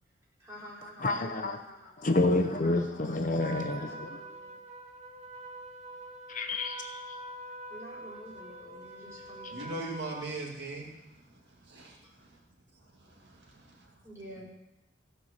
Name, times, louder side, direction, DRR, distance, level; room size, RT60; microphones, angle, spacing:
voice 1, 0.4-3.2 3.7-4.5 7.7-9.9 14.0-14.4, equal, 15° right, -7 dB, 4.3 m, -49 dB
voice 2, 1.0-1.6 2.0-4.1 6.3-7.0, left 2 dB, 45° left, 6 dB, 0.7 m, -28 dB
Trumpet, 3.4-10.3, right 2 dB, 35° right, 1.2 m, -45 dB
voice 3, 9.5-11.9 13.0-13.9, right 2 dB, 60° right, -1 dB, 2.3 m, -40 dB
15.5 x 5.6 x 6.6 m, 0.91 s
head